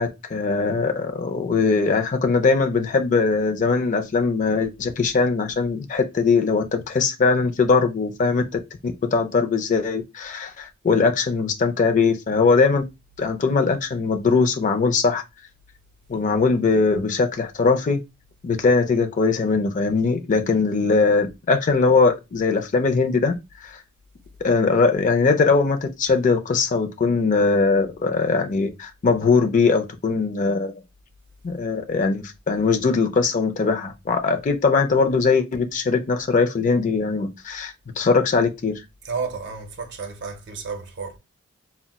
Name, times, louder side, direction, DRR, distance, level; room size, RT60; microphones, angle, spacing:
voice 1, 0.0-8.4 8.8-12.8 13.2-15.2 16.1-18.0 18.4-23.3 23.6-23.8 24.4-30.7 31.4-38.8, left 4 dB, 40° left, 0.4 m, -21 dB
voice 2, 39.0-41.2, right 5 dB, 60° right, 0.6 m, -32 dB
3.9 x 2.1 x 2.2 m
head